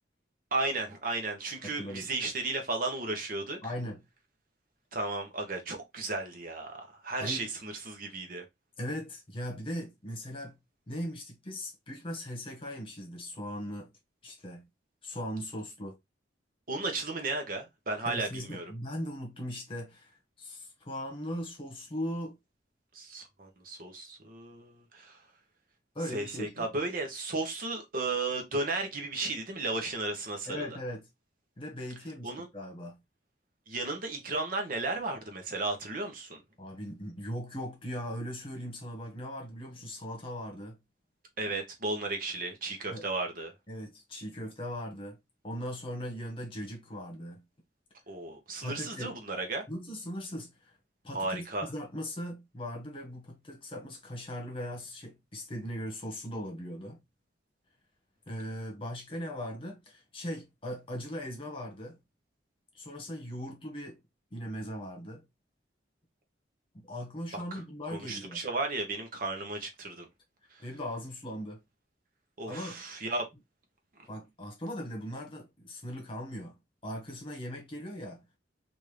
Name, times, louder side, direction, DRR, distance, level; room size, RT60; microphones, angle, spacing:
voice 1, 0.5-3.6 4.9-8.4 16.7-18.7 22.9-25.2 26.1-30.7 32.2-32.5 33.7-36.4 41.4-43.5 48.1-49.6 51.1-51.7 67.5-67.6 67.9-70.1 72.4-73.2, right 2 dB, 50° right, 0.9 m, -34 dB
voice 2, 1.6-2.1 3.6-4.0 7.2-7.4 8.8-10.6 10.9-13.9 14.2-14.7 15.0-15.9 18.0-22.4 25.9-26.7 30.5-31.0 31.6-33.0 36.6-40.8 42.9-43.0 43.7-45.2 45.4-47.4 48.6-49.2 49.7-50.8 51.0-57.0 58.3-62.0 62.7-64.0 64.3-65.2 66.7-68.4 70.6-71.6 72.5-72.8 74.1-76.5 76.8-78.2, equal, 30° left, 1.2 m, -39 dB
3.5 x 2.6 x 3.1 m
head